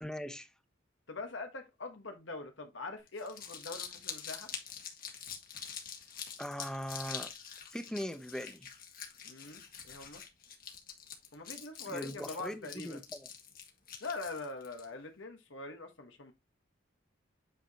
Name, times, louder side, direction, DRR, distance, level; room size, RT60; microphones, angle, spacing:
voice 1, 0.0-0.5 6.4-7.3 7.7-8.7 11.9-13.3, equal, 5° left, 0.8 m, -40 dB
voice 2, 1.1-4.5 9.2-10.2 11.3-13.0 14.0-16.3, left 3 dB, 70° left, 1.4 m, -43 dB
Crumpling crinkling, 3.1-14.8, left 7 dB, 50° left, 1.9 m, -45 dB
9.0 x 4.8 x 2.9 m
head